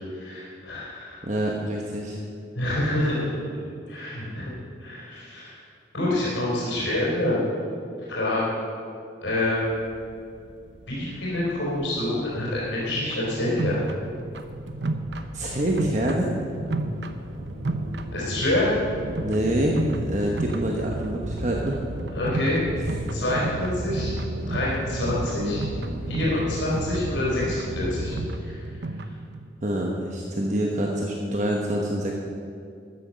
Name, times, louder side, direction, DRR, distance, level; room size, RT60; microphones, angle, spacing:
voice 1, 0.1-1.2 2.6-3.2 3.9-4.5 4.8-5.6 5.9-7.4 8.1-8.4 9.2-9.7 10.9-13.8 18.1-18.7 22.1-22.6 23.1-24.1 24.5-25.6 26.1-28.2 28.4-28.6, left 1 dB, 80° left, -6 dB, 4.0 m, -27 dB
voice 2, 1.2-2.2 15.3-16.3 19.2-21.8 29.6-32.1, right 1 dB, 40° right, -1 dB, 1.1 m, -26 dB
sound 1, 9.2-28.2, right 1 dB, 85° right, 1.4 m, -36 dB
sound 2, 12.9-29.5, right 2 dB, 65° right, 0.8 m, -33 dB
13.0 x 9.7 x 6.5 m, 2.4 s
head